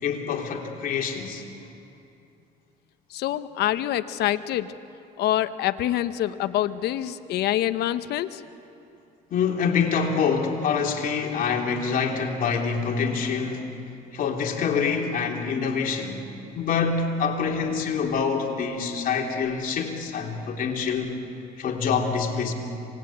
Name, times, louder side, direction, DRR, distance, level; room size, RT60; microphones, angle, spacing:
voice 1, 0.0-1.4 9.3-13.7 14.1-16.2 16.5-21.2 21.6-22.5, left 5 dB, 55° left, 1 dB, 3.4 m, -26 dB
voice 2, 3.1-4.7 5.2-8.4, left 13 dB, 75° left, 12 dB, 0.9 m, -26 dB
27.0 x 19.5 x 8.6 m, 2.7 s
cardioid pair, 110°, 17 cm